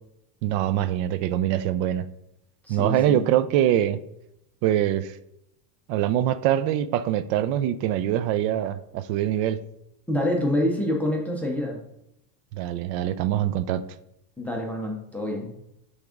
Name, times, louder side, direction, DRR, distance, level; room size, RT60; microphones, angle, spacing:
voice 1, 0.4-2.1 2.7-4.0 4.6-5.1 5.9-9.6 12.5-13.8, right 11 dB, 85° right, 13 dB, 0.6 m, -24 dB
voice 2, 2.6-3.2 10.1-11.8 14.4-15.5, left 1 dB, 5° left, -1 dB, 0.4 m, -26 dB
7.7 x 3.6 x 3.6 m, 0.82 s
cardioid pair, 165°, 48 cm